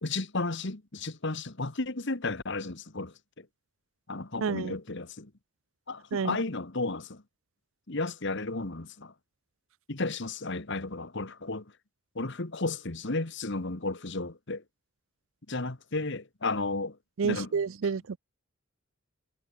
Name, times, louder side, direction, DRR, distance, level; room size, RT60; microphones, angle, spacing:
voice 1, 0.0-3.5 4.1-5.3 5.9-7.2 7.9-9.1 9.9-11.7 12.1-14.6 15.5-17.0 17.2-17.5, left 3 dB, 50° left, 1.5 m, -33 dB
voice 2, 4.4-4.8 6.1-6.4 17.2-18.2, right 5 dB, 60° right, 0.4 m, -29 dB
head